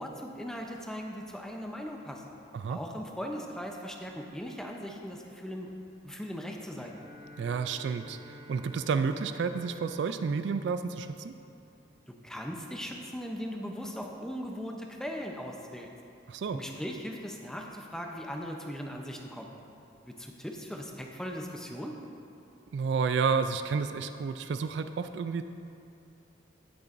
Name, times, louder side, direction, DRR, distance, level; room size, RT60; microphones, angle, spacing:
voice 1, 0.0-2.2 2.7-5.7 6.0-7.0 12.1-15.9 16.5-19.5 20.1-22.0, equal, 5° left, 1 dB, 0.6 m, -39 dB
Bowed string instrument, 6.8-12.1, equal, 30° right, 1.8 m, -50 dB
voice 2, 7.4-11.4 16.3-16.6 22.7-25.4, right 5 dB, 60° right, 9 dB, 0.3 m, -30 dB
16.0 x 6.9 x 2.6 m, 2.6 s
head